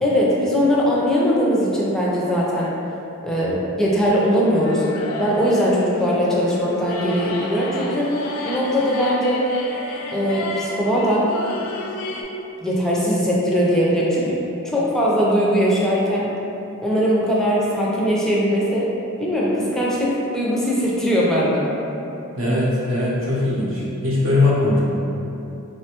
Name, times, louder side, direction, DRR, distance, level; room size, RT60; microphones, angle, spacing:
voice 1, 0.0-2.7 3.2-4.8 5.2-8.1 8.4-9.5 10.1-11.3 12.6-14.4 14.6-16.3 16.8-18.9 19.2-21.7, equal, ahead, -6 dB, 0.4 m, -20 dB
sound 1, 4.6-12.2, left 2 dB, 70° left, 0.4 m, -31 dB
voice 2, 22.4-24.8, left 2 dB, 65° right, -7 dB, 0.8 m, -20 dB
3.4 x 2.2 x 2.8 m, 3.0 s
head